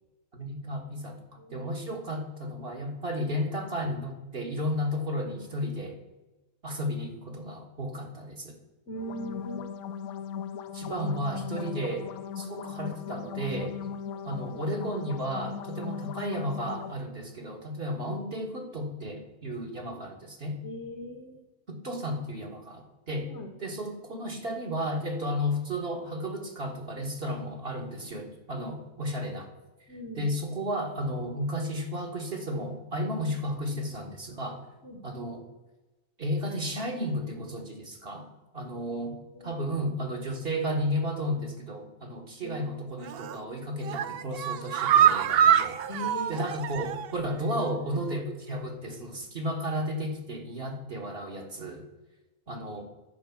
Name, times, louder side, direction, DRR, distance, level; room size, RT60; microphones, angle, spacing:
voice 1, 0.3-1.2 1.5-6.0 6.6-8.6 10.7-12.1 12.3-13.8 14.2-20.6 21.7-23.3 23.6-29.5 30.1-34.6 35.0-35.5 36.2-38.3 38.5-39.2 39.4-45.7 46.3-51.8 52.5-52.8, equal, 40° right, 1 dB, 1.7 m, -33 dB
voice 2, 1.4-1.7 8.9-9.7 11.5-11.7 18.0-18.2 19.9-20.0 20.6-21.4 23.3-23.5 29.9-30.3 34.8-35.0 39.3-39.6 42.4-42.7 45.9-46.4, equal, 50° left, 4 dB, 1.6 m, -40 dB
sound 1, 9.0-16.9, left 7 dB, 75° left, 1.1 m, -38 dB
sound 2, 43.0-43.4 43.8-47.2 47.5-47.6 48.0-48.1, right 9 dB, 70° right, 0.5 m, -25 dB
10.5 x 5.0 x 7.1 m, 1.1 s
omnidirectional pair, 1.5 m